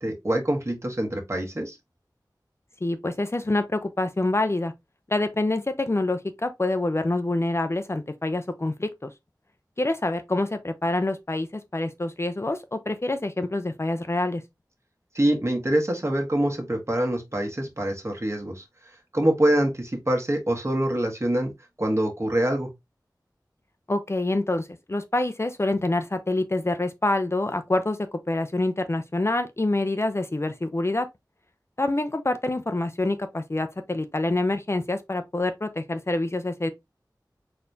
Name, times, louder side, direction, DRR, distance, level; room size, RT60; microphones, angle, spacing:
voice 1, 0.0-1.8 15.1-18.6 19.1-21.5 21.8-22.7, right 1 dB, 40° right, 1.4 m, -25 dB
voice 2, 2.8-4.7 5.1-9.1 9.8-14.4 23.9-31.1 31.8-36.7, left 2 dB, 35° left, 0.5 m, -26 dB
4.2 x 3.3 x 2.6 m
wide cardioid pair, 60°, 7 cm